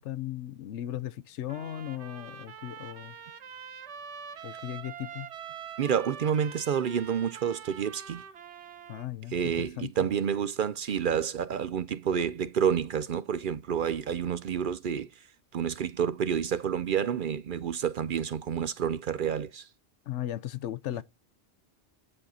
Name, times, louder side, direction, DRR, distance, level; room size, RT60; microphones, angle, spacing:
voice 1, 0.0-3.1 4.4-5.3 8.9-9.9 20.1-21.0, left 12 dB, 90° left, 1.0 m, -37 dB
Trumpet, 1.5-9.1, right 7 dB, 80° right, 1.3 m, -44 dB
voice 2, 5.8-8.2 9.3-15.1 15.5-19.6, right 8 dB, 60° right, 0.6 m, -29 dB
9.8 x 4.0 x 4.2 m
omnidirectional pair, 1.2 m